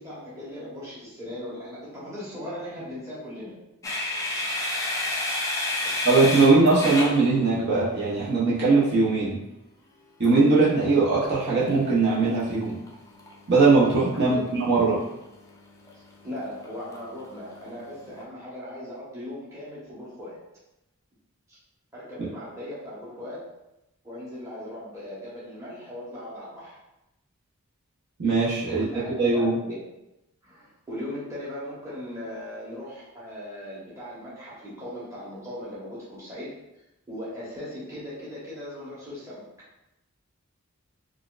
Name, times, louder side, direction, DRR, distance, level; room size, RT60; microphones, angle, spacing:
voice 1, 0.0-3.5 5.8-6.4 6.8-7.0 14.1-14.5 15.9-20.4 21.5-21.6 21.9-23.5 24.0-26.8 28.6-29.8 30.4-36.6 37.1-39.4, left 1 dB, 15° right, -9 dB, 1.0 m, -38 dB
sound 1, 3.8-7.9 10.2-18.2, left 2 dB, 15° left, 0.4 m, -34 dB
voice 2, 6.0-9.4 10.2-12.8 13.5-15.0 28.2-29.5, right 3 dB, 50° right, -7 dB, 0.7 m, -20 dB
3.9 x 2.4 x 2.4 m, 0.92 s
head